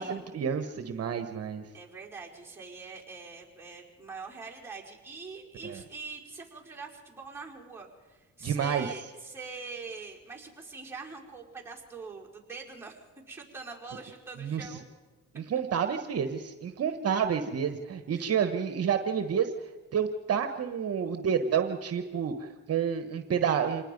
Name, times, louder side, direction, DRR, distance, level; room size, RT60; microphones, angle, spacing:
voice 1, 0.0-1.7 5.6-5.8 8.4-8.9 14.4-14.8 15.3-23.8, right 7 dB, 55° right, 8 dB, 1.2 m, -29 dB
voice 2, 1.7-14.8 18.1-18.3, right 4 dB, 10° right, -3 dB, 5.0 m, -44 dB
26.5 x 19.5 x 5.3 m, 1.3 s
cardioid pair, 90°, 30 cm